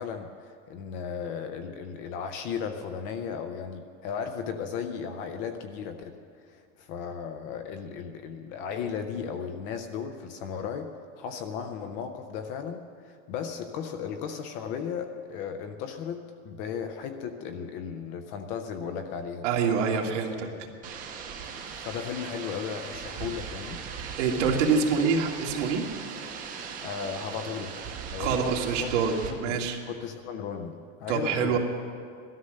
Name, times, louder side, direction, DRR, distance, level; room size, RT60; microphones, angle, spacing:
voice 1, 0.0-6.2 6.4-19.4 21.8-23.8 25.0-25.2 26.8-27.9 28.1-28.9 29.3-31.6, left 7 dB, 25° left, 7 dB, 0.4 m, -35 dB
voice 2, 19.4-20.7 24.0-25.8 28.2-29.1 29.4-29.8 31.1-31.6, right 6 dB, 75° right, 1 dB, 2.2 m, -26 dB
sound 1, 20.8-29.3, right 6 dB, 20° right, 1.1 m, -39 dB
17.5 x 13.0 x 6.4 m, 2.3 s
supercardioid pair, 175°, 36 cm